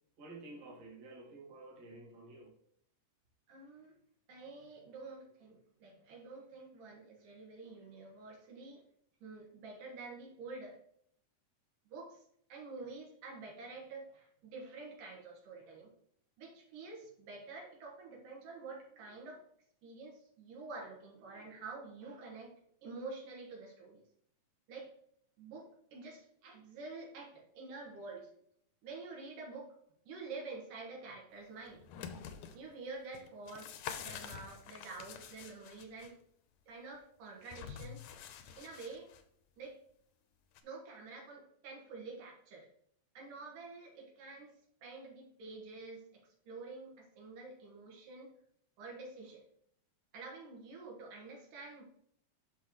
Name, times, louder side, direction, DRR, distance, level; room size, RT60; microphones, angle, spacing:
voice 1, 0.2-2.5, right 2 dB, 55° right, 3.0 m, -51 dB
voice 2, 3.5-3.9 4.3-8.8 9.2-10.8 11.9-12.2 12.5-15.9 16.4-19.4 19.8-22.5 22.8-24.0 24.7-24.9 25.4-28.3 28.8-29.7 30.1-31.8 32.5-36.1 36.7-38.0 38.6-39.1 39.6-39.8 40.6-42.7 43.1-44.5 44.8-48.3 48.8-49.4 50.1-51.8, right 3 dB, 85° right, 3.1 m, -48 dB
sound 1, 31.7-32.6 33.1-36.1 37.4-39.2 40.6-40.7, left 8 dB, 80° left, 2.1 m, -47 dB
10.5 x 6.2 x 3.1 m
omnidirectional pair, 3.7 m